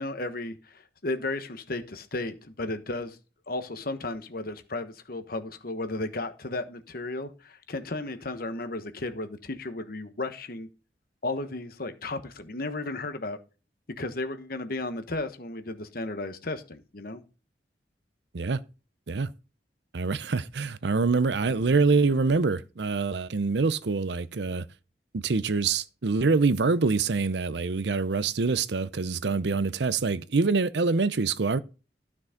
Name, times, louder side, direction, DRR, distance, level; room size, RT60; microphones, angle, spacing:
voice 1, 0.0-3.2 3.5-10.7 11.2-13.4 14.0-17.2, left 2 dB, 55° left, 1.3 m, -34 dB
voice 2, 19.9-24.6 25.1-31.6, right 4 dB, 70° right, 0.6 m, -25 dB
13.0 x 6.1 x 3.7 m
head